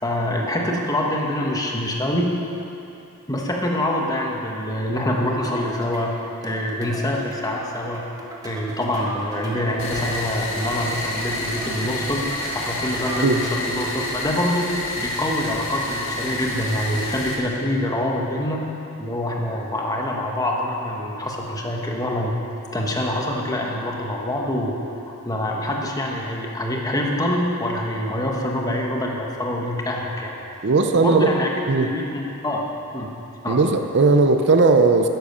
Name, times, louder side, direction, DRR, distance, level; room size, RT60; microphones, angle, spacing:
voice 1, 0.0-2.3 3.3-8.0 8.4-12.2 12.5-18.6 19.0-22.3 22.7-30.6 30.9-31.5 31.8-32.6 32.9-33.1 33.4-33.6, left 1 dB, 15° left, -1 dB, 1.4 m, -25 dB
sound 1, 5.4-13.8, equal, 15° right, 1.4 m, -38 dB
sound 2, 9.8-17.3, left 1 dB, 65° left, 2.0 m, -29 dB
voice 2, 30.6-31.3 31.7-31.9 33.5-35.1, right 3 dB, 55° right, 6 dB, 0.6 m, -17 dB
10.5 x 10.0 x 6.8 m, 2.8 s
head